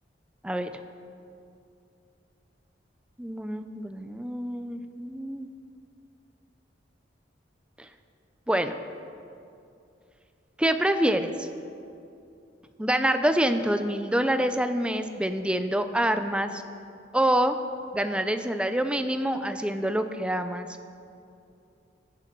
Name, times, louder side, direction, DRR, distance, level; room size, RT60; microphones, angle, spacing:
voice 1, 3.2-5.5 7.8-7.9 8.5-8.8 10.6-11.5 12.8-16.6 17.1-17.6 17.9-20.7, right 1 dB, 5° right, 9 dB, 0.5 m, -26 dB
16.0 x 9.7 x 4.6 m, 2.6 s
head